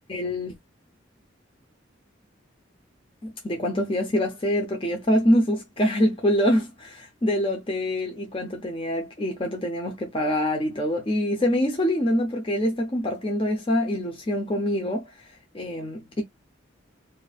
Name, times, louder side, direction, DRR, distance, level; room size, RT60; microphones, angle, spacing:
voice 1, 0.1-0.5 3.2-15.3 15.5-16.2, equal, 30° left, 0.7 m, -25 dB
4.4 x 2.6 x 2.4 m
head